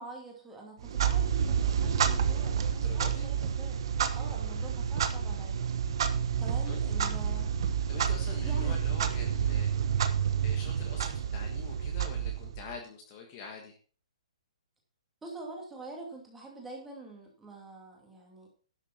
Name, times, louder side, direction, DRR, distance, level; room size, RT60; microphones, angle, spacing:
voice 1, 0.0-3.8 4.1-5.6 6.4-7.5 8.4-8.8 15.2-18.5, right 2 dB, 5° right, -1 dB, 2.5 m, -45 dB
Clock, 0.8-12.8, right 7 dB, 45° right, 1.2 m, -29 dB
voice 2, 2.7-3.3 6.7-6.8 7.9-9.7 10.4-13.8, left 5 dB, 25° left, 2 dB, 1.6 m, -45 dB
12.0 x 7.4 x 5.7 m, 0.40 s
hypercardioid pair, 175°, 4 cm